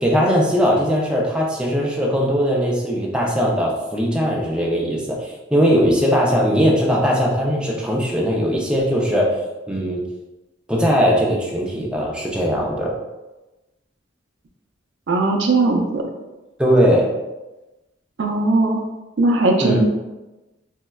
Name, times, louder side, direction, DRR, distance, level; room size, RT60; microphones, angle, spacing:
voice 1, 0.0-9.4 9.7-10.0 10.7-13.0 16.6-17.1 19.6-19.9, equal, 5° right, -2 dB, 0.4 m, -19 dB
voice 2, 15.1-16.0 18.2-18.8 19.2-19.9, right 2 dB, 65° right, 2 dB, 0.4 m, -18 dB
4.3 x 2.1 x 2.2 m, 1.1 s
head